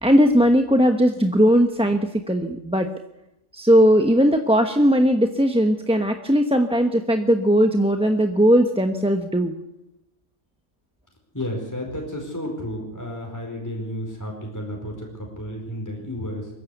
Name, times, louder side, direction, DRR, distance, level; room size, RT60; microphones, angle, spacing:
voice 1, 0.0-2.9 3.5-9.5, equal, 5° right, 4 dB, 0.9 m, -18 dB
voice 2, 11.3-16.5, equal, 10° left, 0 dB, 4.7 m, -32 dB
23.5 x 14.0 x 8.2 m, 0.86 s
omnidirectional pair, 1.5 m